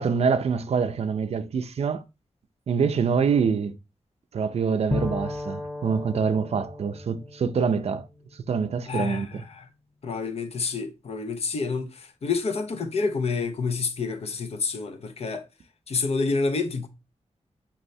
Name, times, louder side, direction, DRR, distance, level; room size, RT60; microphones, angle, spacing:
voice 1, 0.0-2.0 2.7-3.8 4.3-8.1 8.5-9.3, right 6 dB, 55° right, 0.4 m, -25 dB
Bowed string instrument, 4.9-8.6, left 2 dB, 5° left, 0.4 m, -34 dB
voice 2, 8.9-9.7 10.0-15.5 15.9-16.9, left 4 dB, 55° left, 0.6 m, -28 dB
5.4 x 3.1 x 2.6 m
wide cardioid pair, 160°, 12 cm